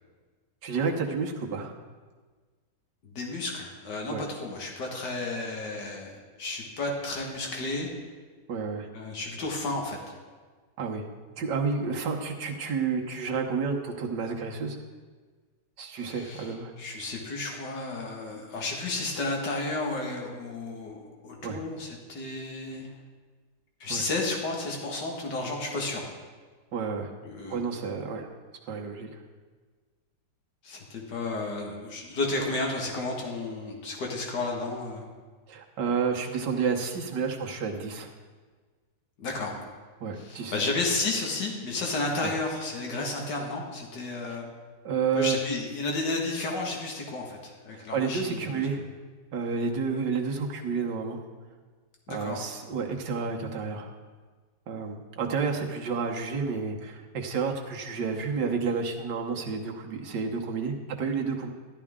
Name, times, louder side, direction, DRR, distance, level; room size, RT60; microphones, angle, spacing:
voice 1, 0.6-1.8 4.1-4.2 8.5-8.9 10.8-11.1 11.4-14.8 15.8-16.7 21.4-21.6 23.9-24.0 26.7-27.1 27.5-28.3 28.7-29.2 35.5-38.1 40.0-40.6 42.2-42.3 44.8-45.4 47.7-48.8 49.3-51.2 52.1-53.9 54.7-61.5, right 5 dB, 80° right, 1 dB, 1.8 m, -30 dB
voice 2, 3.0-7.9 8.9-10.0 16.0-22.9 23.8-26.1 27.2-27.6 30.6-35.0 39.2-39.5 40.2-44.5 45.1-48.7 52.1-52.4, left 2 dB, 75° left, 0 dB, 2.3 m, -32 dB
13.0 x 11.5 x 3.7 m, 1.4 s
omnidirectional pair, 1.8 m